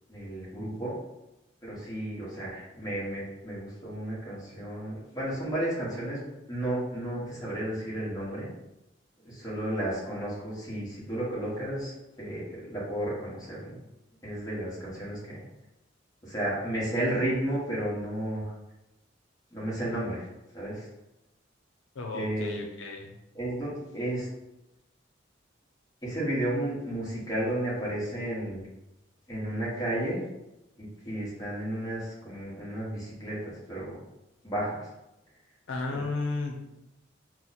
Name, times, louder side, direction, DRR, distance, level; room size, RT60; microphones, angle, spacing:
voice 1, 0.1-1.0 1.6-6.2 6.5-8.5 9.2-13.8 14.2-15.5 16.2-18.5 19.5-20.3 20.5-20.9 22.1-22.5 23.3-24.3 26.0-28.6 29.3-30.2 30.8-34.0 34.4-34.9 35.9-36.0, right 1 dB, 20° left, -7 dB, 1.1 m, -33 dB
voice 2, 21.9-23.2 35.7-36.6, left 3 dB, 90° left, 0 dB, 0.5 m, -33 dB
2.9 x 2.0 x 3.9 m, 0.95 s
head